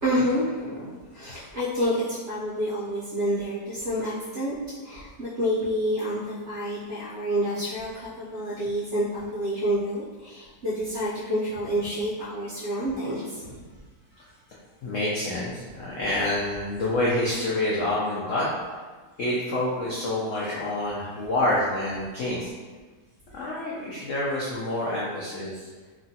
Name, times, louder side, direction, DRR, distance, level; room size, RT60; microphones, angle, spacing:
voice 1, 0.0-4.6 4.8-13.6, equal, 65° right, -9 dB, 0.7 m, -28 dB
voice 2, 14.8-18.5 19.2-22.5 23.3-25.7, left 1 dB, 80° left, -6 dB, 0.6 m, -27 dB
2.9 x 2.5 x 2.7 m, 1.4 s
omnidirectional pair, 1.9 m